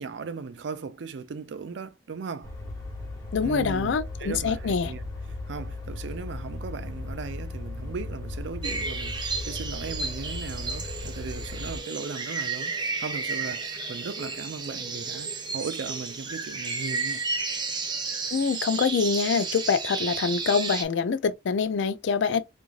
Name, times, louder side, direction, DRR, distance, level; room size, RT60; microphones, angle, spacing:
voice 1, 0.0-2.5 3.4-5.0 5.5-17.2, right 5 dB, 75° right, 0.4 m, -37 dB
sound 1, 2.4-11.8, left 2 dB, 20° left, 1.2 m, -37 dB
voice 2, 3.3-4.9 18.3-22.4, left 5 dB, 80° left, 0.4 m, -25 dB
sound 2, 8.6-20.8, right 4 dB, 25° right, 0.6 m, -32 dB
3.1 x 2.5 x 2.4 m
head